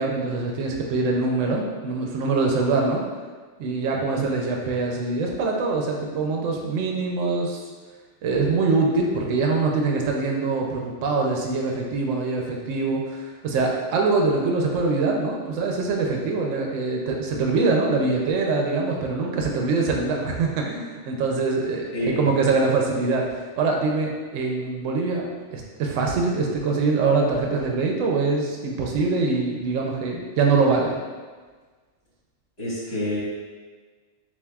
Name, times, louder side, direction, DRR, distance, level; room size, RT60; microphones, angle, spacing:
voice 1, 0.0-3.0 3.6-7.6 8.2-31.0, right 3 dB, 85° right, 0 dB, 1.0 m, -24 dB
voice 2, 3.9-4.2 21.9-22.3 32.6-33.2, left 1 dB, 55° left, -10 dB, 1.8 m, -28 dB
7.0 x 2.5 x 2.3 m, 1.4 s
omnidirectional pair, 1.3 m